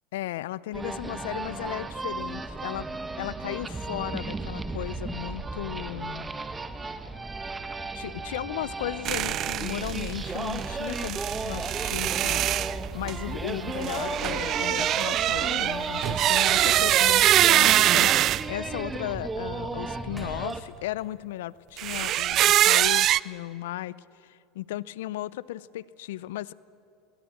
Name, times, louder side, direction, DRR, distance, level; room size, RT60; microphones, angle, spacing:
voice 1, 0.1-2.9 3.2-6.3 7.9-11.2 11.4-18.1 18.5-26.5, left 15 dB, 80° left, 21 dB, 0.5 m, -35 dB
sound 1, 0.7-20.6, right 3 dB, 15° right, 1.3 m, -35 dB
sound 2, 9.0-18.4 21.8-23.2, right 13 dB, 50° right, 0.4 m, -24 dB
sound 3, 20.2-21.1, equal, 5° left, 3.6 m, -53 dB
21.0 x 20.5 x 7.8 m, 2.7 s
hypercardioid pair, 95°, 0 cm